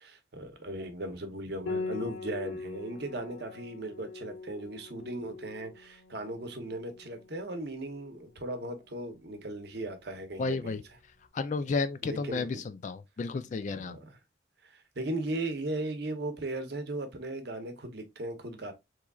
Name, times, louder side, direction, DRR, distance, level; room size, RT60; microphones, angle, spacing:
voice 1, 0.0-10.8 12.0-12.6 13.7-14.2 14.6-18.7, right 1 dB, 60° right, 0.8 m, -37 dB
Piano, 1.7-11.0, left 3 dB, 85° left, 1.4 m, -43 dB
voice 2, 10.4-10.8 11.3-14.0, left 4 dB, 40° left, 0.3 m, -32 dB
3.6 x 3.1 x 2.3 m
head